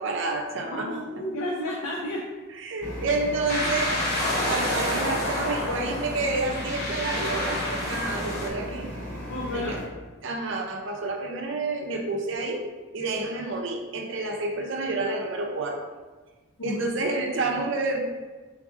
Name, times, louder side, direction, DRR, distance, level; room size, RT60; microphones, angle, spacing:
voice 1, 0.0-0.9 2.6-4.0 4.4-8.9 9.5-9.8 10.2-12.7 12.9-15.8 16.6-18.0, right 3 dB, 60° right, 2 dB, 0.5 m, -29 dB
voice 2, 0.7-2.2 9.3-9.8 16.6-16.9, left 1 dB, 80° left, -3 dB, 0.5 m, -31 dB
sound 1, 2.8-9.8, equal, 10° left, 0.9 m, -36 dB
sound 2, 3.5-8.5, left 1 dB, 45° left, 0.8 m, -29 dB
3.9 x 3.6 x 2.5 m, 1.3 s
head